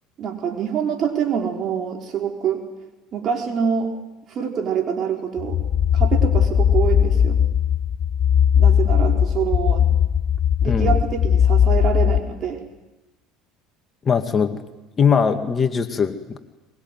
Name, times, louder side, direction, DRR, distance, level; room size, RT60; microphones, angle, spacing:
voice 1, 0.2-2.6 3.1-3.9 4.3-5.6 5.9-7.4 8.6-9.9 10.6-12.6, right 7 dB, 45° right, 3 dB, 4.8 m, -25 dB
sound 1, 5.4-12.2, left 8 dB, 50° left, 1.1 m, -18 dB
voice 2, 10.6-11.0 14.0-14.6 15.0-16.4, left 6 dB, 30° left, 7 dB, 2.2 m, -20 dB
23.5 x 22.5 x 9.5 m, 1.0 s
hypercardioid pair, 70°, 0 cm